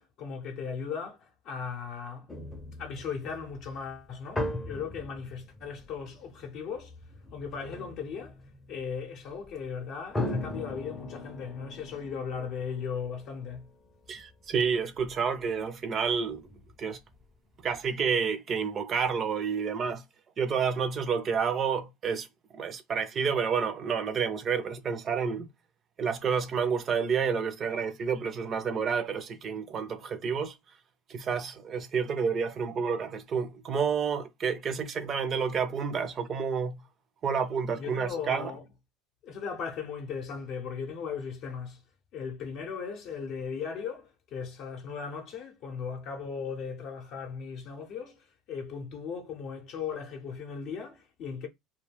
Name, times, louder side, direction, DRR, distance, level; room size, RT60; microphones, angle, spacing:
voice 1, 0.0-2.3 2.8-7.0 7.3-8.4 8.7-13.7 37.8-38.6 39.2-41.8 42.1-51.5, left 6 dB, 55° left, 0.6 m, -37 dB
sound 1, 2.3-15.6 16.0-17.3 17.6-17.9, left 1 dB, 10° left, 0.5 m, -40 dB
voice 2, 14.1-16.5 16.8-17.0 17.6-20.0 20.4-22.3 22.5-25.5 26.0-30.5 31.1-36.8 37.2-38.5, right 6 dB, 35° right, 0.5 m, -29 dB
2.2 x 2.2 x 3.3 m
supercardioid pair, 120°, 0 cm